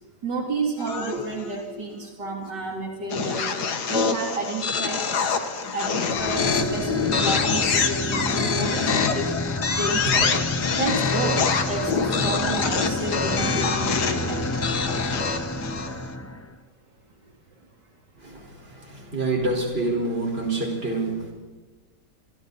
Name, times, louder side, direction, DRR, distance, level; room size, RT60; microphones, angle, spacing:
voice 1, 0.2-3.5 3.9-5.1 5.7-9.3 9.8-10.4 10.7-14.4, right 2 dB, 75° right, 0 dB, 3.6 m, -31 dB
Error sounds, 0.8-1.6 3.1-16.1, left 5 dB, 65° left, 2.0 m, -26 dB
voice 2, 1.1-1.8 2.2-2.4 6.5-6.9 7.7-8.0 10.9-11.0 18.2-21.3, right 2 dB, 35° right, 0 dB, 5.1 m, -29 dB
sound 1, 6.1-16.6, left 1 dB, 15° left, 0.5 m, -29 dB
26.5 x 26.5 x 4.2 m, 1.2 s
omnidirectional pair, 1.9 m